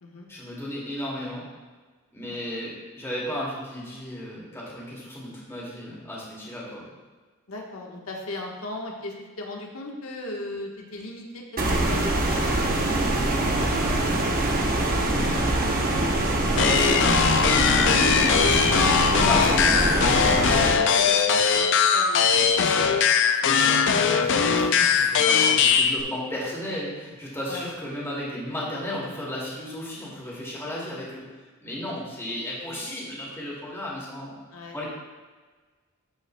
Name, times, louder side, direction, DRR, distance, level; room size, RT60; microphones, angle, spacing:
voice 1, 0.3-1.4 2.1-6.9 14.7-15.7 16.3-16.9 17.7-17.8 19.2-19.7 22.4-23.1 23.4-31.2 31.6-34.3 34.7-34.8, left 1 dB, 15° left, -6 dB, 2.2 m, -34 dB
voice 2, 7.5-11.4 11.9-15.8 16.8-17.0 17.6-22.8 27.5-27.7 34.5-34.8, left 2 dB, 85° left, -1 dB, 1.2 m, -38 dB
sound 1, 11.6-20.7, right 1 dB, 45° right, 0.8 m, -24 dB
sound 2, 16.6-26.0, left 6 dB, 60° left, 0.4 m, -20 dB
13.5 x 5.2 x 2.2 m, 1.3 s
head